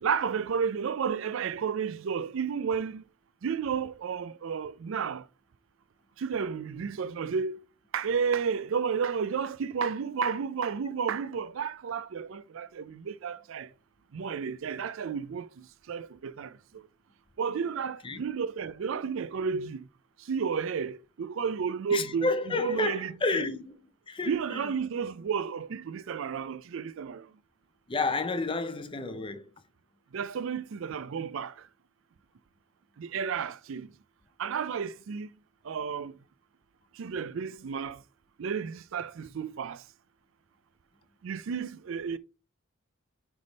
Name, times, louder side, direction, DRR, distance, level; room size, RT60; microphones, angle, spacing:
voice 1, 0.0-3.0 3.4-5.3 6.2-7.6 7.9-13.7 14.1-16.8 17.4-19.9 20.2-22.3 22.6-23.5 24.2-27.3 30.1-31.7 33.0-33.9 34.4-35.3 35.6-36.2 36.9-38.0 38.4-39.8 41.2-42.2, right 6 dB, 65° right, 0.4 m, -32 dB
voice 2, 21.9-23.8 24.1-24.7 27.9-29.5, left 3 dB, 25° left, 0.5 m, -31 dB
9.4 x 3.5 x 4.0 m
head